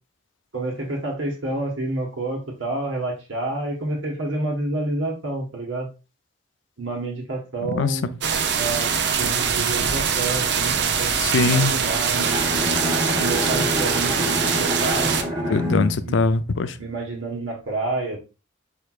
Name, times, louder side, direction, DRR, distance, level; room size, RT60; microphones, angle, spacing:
voice 1, 0.5-5.9 6.8-8.2 8.6-8.9 9.2-12.5 13.1-15.2 16.0-16.1 16.8-18.2, right 2 dB, 80° right, 1.4 m, -29 dB
sound 1, 8.2-15.2, right 6 dB, 60° right, 0.6 m, -23 dB
voice 2, 11.1-11.7 15.5-16.8, left 4 dB, 70° left, 0.4 m, -22 dB
Bowed string instrument, 12.1-17.2, left 1 dB, 20° right, 1.3 m, -28 dB
4.8 x 4.6 x 2.4 m
head